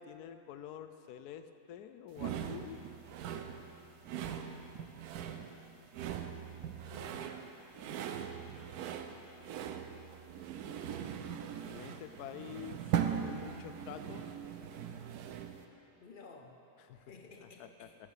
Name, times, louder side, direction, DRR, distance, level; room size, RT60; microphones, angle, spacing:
voice 1, 0.0-2.8 7.8-8.0 11.6-14.3 16.8-17.0 17.6-17.9, left 9 dB, 75° left, 10 dB, 1.1 m, -48 dB
sound 1, 2.2-15.6, right 9 dB, 75° right, 1.1 m, -40 dB
voice 2, 6.9-7.3 16.0-16.6 16.9-18.0, left 4 dB, 50° left, 3 dB, 0.6 m, -53 dB
13.5 x 7.3 x 5.0 m, 2.9 s
omnidirectional pair, 1.7 m